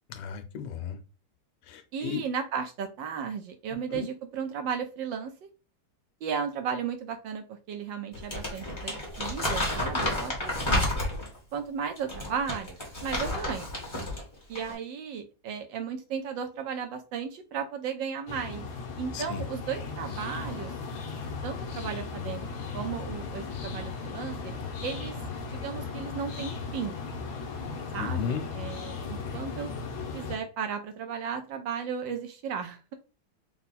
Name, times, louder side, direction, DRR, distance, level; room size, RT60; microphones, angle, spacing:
voice 1, 0.1-1.0 1.7-2.2 3.9-4.1 19.1-19.5 28.0-28.4, left 8 dB, 90° left, 1.7 m, -34 dB
voice 2, 1.9-5.5 6.2-10.8 11.5-13.7 14.5-18.7 19.0-20.7 21.4-22.5 22.7-24.5 24.8-25.1 25.5-27.0 27.9-29.7 30.1-32.9, right 7 dB, 70° right, 1.2 m, -35 dB
Crumpling crinkling, 8.1-11.4 12.0-14.2 14.5-14.7, left 1 dB, 15° left, 1.2 m, -30 dB
sound 1, 18.3-30.4, left 4 dB, 70° left, 1.7 m, -37 dB
4.3 x 2.3 x 4.1 m
omnidirectional pair, 2.4 m